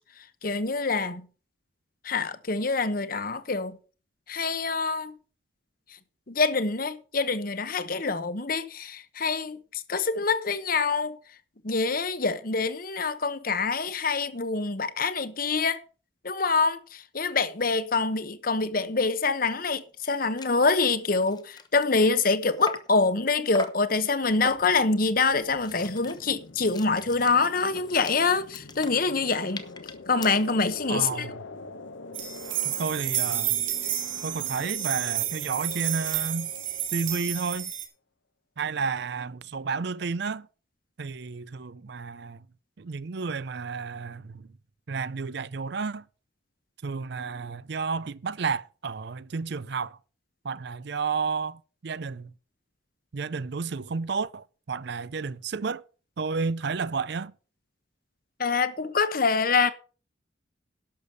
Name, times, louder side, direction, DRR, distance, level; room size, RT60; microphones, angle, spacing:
voice 1, 0.4-1.3 2.0-3.8 4.3-5.1 6.3-11.2 11.6-15.8 16.2-29.6 30.1-31.3 58.4-59.7, left 4 dB, 45° left, 1.0 m, -25 dB
sound 1, 19.7-19.8 20.0-20.1 20.4-20.6 21.0-23.0 23.5-23.9 24.4-24.9 25.4-30.8, left 4 dB, 20° left, 1.0 m, -42 dB
sound 2, 24.2-37.6, left 2 dB, 75° left, 1.2 m, -45 dB
voice 2, 30.9-31.4 32.6-33.6 34.2-36.5 36.9-37.7 38.6-40.5 41.0-42.4 42.8-44.5 44.9-46.0 46.8-50.0 50.4-52.3 53.1-55.8 56.2-57.3, right 4 dB, 60° right, 0.5 m, -31 dB
sound 3, 32.1-37.9, right 12 dB, 75° right, 2.7 m, -30 dB
11.5 x 7.0 x 6.5 m
head